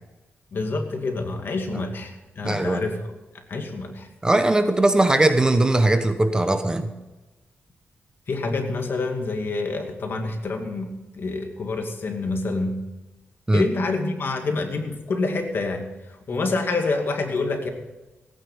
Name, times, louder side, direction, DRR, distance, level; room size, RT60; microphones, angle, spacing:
voice 1, 0.5-3.1 3.5-4.1 8.3-12.8 13.5-17.7, left 3 dB, 55° left, 4 dB, 2.3 m, -27 dB
voice 2, 2.4-2.8 4.2-6.9 13.5-13.7, right 2 dB, 15° right, 8 dB, 1.0 m, -20 dB
16.5 x 9.4 x 5.7 m, 1.1 s
cardioid pair, 90°, 4 cm